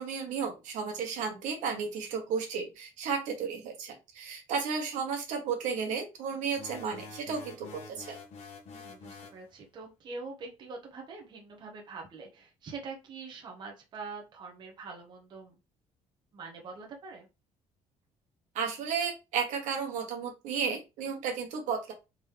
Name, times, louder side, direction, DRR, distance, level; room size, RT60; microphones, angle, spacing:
voice 1, 0.0-8.2 18.5-21.9, right 6 dB, 85° right, 3 dB, 1.3 m, -33 dB
sound 1, 6.6-9.4, left 4 dB, 60° left, 1.0 m, -47 dB
voice 2, 8.7-15.6 16.3-17.3, right 4 dB, 35° right, 0 dB, 1.0 m, -44 dB
3.7 x 3.0 x 3.3 m, 0.26 s
cardioid pair, 165°, 13 cm